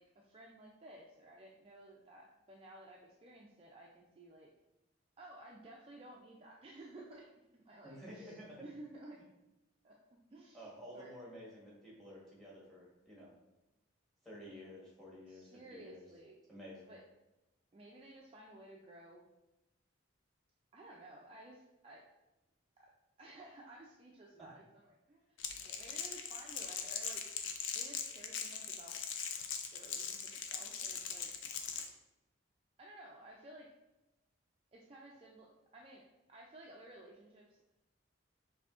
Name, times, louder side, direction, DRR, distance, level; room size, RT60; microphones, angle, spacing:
voice 1, 0.0-4.5 5.2-9.2 9.8-11.1 15.3-16.4 16.9-17.0 17.7-19.3 20.7-22.0 22.8-22.9 23.2-27.2 27.7-29.0 29.7-31.3 32.8-33.7 34.7-37.6, right 1 dB, 30° right, -2 dB, 0.3 m, -55 dB
voice 2, 7.8-8.6 10.5-13.3 14.2-16.0 16.5-16.9 24.4-24.5, equal, ahead, -5 dB, 1.2 m, -52 dB
Crackle, 25.4-31.9, left 6 dB, 70° left, 0.4 m, -41 dB
5.8 x 2.7 x 2.5 m, 0.99 s
head